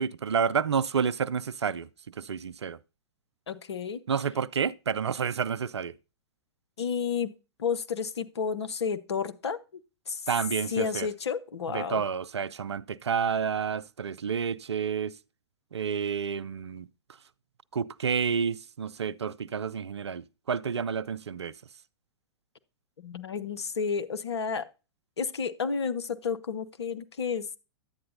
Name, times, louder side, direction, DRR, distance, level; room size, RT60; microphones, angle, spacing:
voice 1, 0.0-1.9 2.2-2.8 4.1-5.9 10.3-11.1 11.7-15.2 15.7-16.9 17.7-21.5, right 6 dB, 80° right, 0.4 m, -29 dB
voice 2, 3.5-4.0 6.8-7.3 7.6-9.6 10.1-10.2 10.7-12.0 23.0-24.7 25.2-27.5, left 6 dB, 70° left, 0.7 m, -31 dB
10.5 x 8.5 x 2.6 m
figure-of-eight pair, 105°, 14 cm